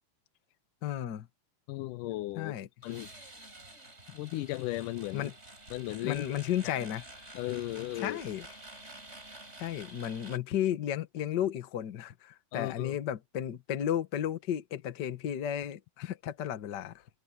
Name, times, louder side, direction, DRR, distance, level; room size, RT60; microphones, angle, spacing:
voice 1, 0.8-1.3 2.4-2.7 5.1-5.3 6.0-7.0 8.0-8.5 9.6-17.0, left 10 dB, 60° left, 1.1 m, -33 dB
voice 2, 1.7-2.6 2.8-3.1 4.1-5.3 5.7-6.2 6.6-6.8 7.3-8.2 12.5-13.0, left 16 dB, 80° left, 2.1 m, -36 dB
sound 1, 2.8-10.4, right 2 dB, 20° right, 6.6 m, -50 dB
omnidirectional pair, 3.8 m